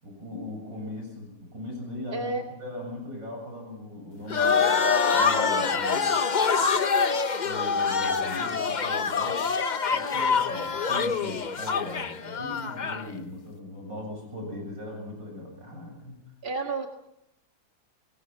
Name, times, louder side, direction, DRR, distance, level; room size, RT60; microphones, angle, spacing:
voice 1, 0.0-2.3 2.6-4.7 5.1-6.2 7.4-9.4 9.8-16.2, left 1 dB, 60° right, 1 dB, 8.0 m, -39 dB
voice 2, 2.1-2.4 16.4-16.9, right 3 dB, 30° right, 3 dB, 1.6 m, -30 dB
sound 1, 4.3-13.1, left 5 dB, 80° left, 0.4 m, -25 dB
25.5 x 21.0 x 5.9 m, 0.82 s
omnidirectional pair, 2.2 m